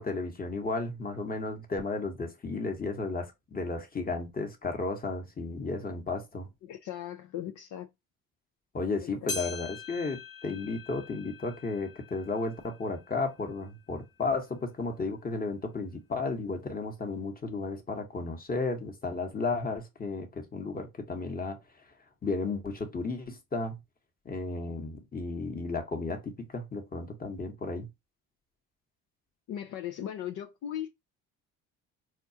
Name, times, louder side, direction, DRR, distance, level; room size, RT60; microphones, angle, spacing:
voice 1, 0.0-6.5 8.7-21.6 22.2-23.8 24.2-27.9, left 3 dB, 25° left, 1.2 m, -33 dB
voice 2, 6.6-7.9 9.2-9.3 29.5-30.9, left 11 dB, 55° left, 0.6 m, -37 dB
sound 1, 9.3-13.9 14.4-14.5 15.3-15.4 16.4-16.5, left 4 dB, 85° left, 1.5 m, -43 dB
4.2 x 2.4 x 2.8 m
supercardioid pair, 75°, 35 cm